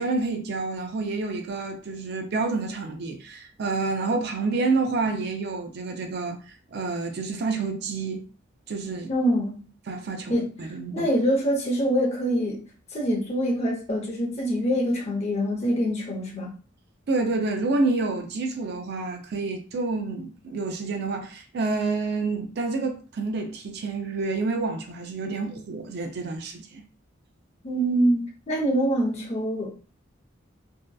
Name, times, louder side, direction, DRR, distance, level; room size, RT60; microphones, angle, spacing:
voice 1, 0.0-6.4 6.7-8.2 8.7-9.1 9.9-11.1 17.1-26.8, right 3 dB, 60° right, 0.4 m, -28 dB
voice 2, 9.1-9.6 10.3-12.6 12.9-16.5 27.6-29.9, equal, 35° left, 0.7 m, -25 dB
2.7 x 2.2 x 2.2 m
head